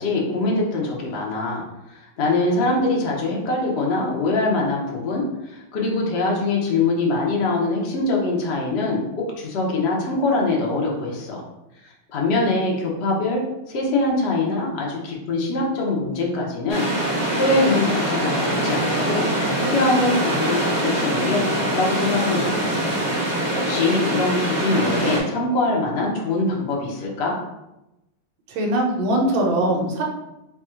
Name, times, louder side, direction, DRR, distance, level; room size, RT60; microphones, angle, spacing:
voice 1, 0.0-1.6 1.9-11.4 12.1-13.4 13.7-16.8 17.3-19.3 19.6-23.0 23.6-27.4, left 2 dB, 70° left, -2 dB, 0.6 m, -23 dB
sound 1, 16.7-25.2, right 1 dB, 20° left, 1.0 m, -23 dB
voice 2, 28.5-30.1, right 1 dB, 75° right, 0 dB, 1.5 m, -21 dB
3.5 x 2.4 x 4.3 m, 0.93 s
omnidirectional pair, 2.3 m